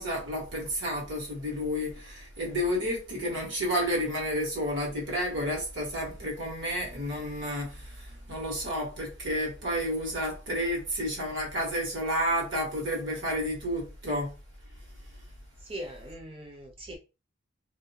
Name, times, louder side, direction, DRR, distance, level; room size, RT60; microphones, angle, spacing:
voice 1, 0.0-14.3, equal, 55° right, 1.5 m, -31 dB
voice 2, 15.7-17.0, right 1 dB, 25° right, 0.7 m, -40 dB
3.1 x 2.7 x 2.8 m
head